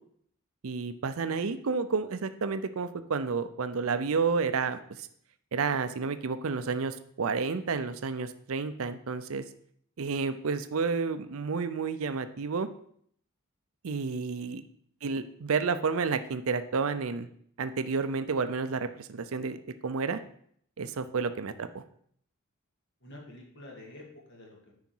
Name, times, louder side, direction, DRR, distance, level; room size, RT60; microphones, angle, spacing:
voice 1, 0.6-5.1 5.5-9.4 10.0-12.7 13.8-14.6 15.0-17.3 17.6-20.2 20.8-21.8, right 5 dB, 70° right, 11 dB, 0.5 m, -30 dB
voice 2, 23.0-24.7, left 1 dB, 55° left, -1 dB, 2.2 m, -49 dB
9.3 x 5.0 x 4.5 m, 0.64 s
head